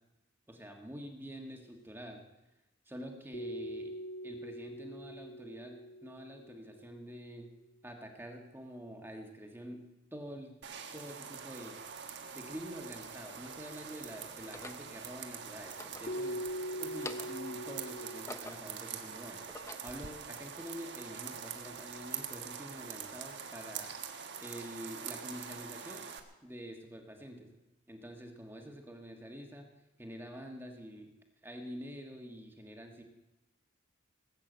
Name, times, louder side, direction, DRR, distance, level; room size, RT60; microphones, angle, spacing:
voice 1, 0.5-2.2 2.8-3.9 4.2-7.5 7.8-9.8 10.1-10.6 10.9-11.8 12.3-16.4 16.7-19.4 19.8-23.9 24.4-26.1 26.4-27.6 27.9-29.7 30.0-31.1 31.4-33.0, equal, 10° right, 3 dB, 1.5 m, -47 dB
sound 1, 3.3-7.5 16.1-18.2, equal, 40° left, 1.8 m, -42 dB
sound 2, 10.6-26.2, right 7 dB, 55° right, 1.3 m, -44 dB
sound 3, 11.9-12.0 12.8-13.6 14.4-14.9 15.6-16.6 16.9-17.5 18.0-18.8 19.3-20.1, left 2 dB, 15° left, 0.6 m, -47 dB
19.0 x 8.3 x 7.9 m, 0.97 s
head